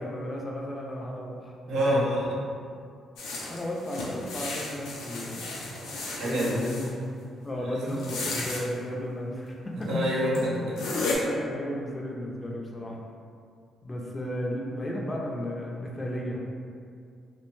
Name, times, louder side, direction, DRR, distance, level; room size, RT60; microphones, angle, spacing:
voice 1, 0.0-2.0 3.5-5.7 6.2-6.9 7.4-9.7 10.1-10.2 11.2-13.0 13.8-16.5, equal, 25° left, -2 dB, 0.4 m, -34 dB
voice 2, 1.7-2.4 6.2-6.6 7.6-8.0 9.8-10.8, equal, 80° right, -5 dB, 0.7 m, -27 dB
sound 1, 3.2-6.9 7.9-8.6 9.8-9.9 10.3-10.4 10.8-11.2, left 3 dB, 90° left, 0.4 m, -34 dB
2.6 x 2.1 x 3.0 m, 2.3 s
cardioid pair, 90°, 0 cm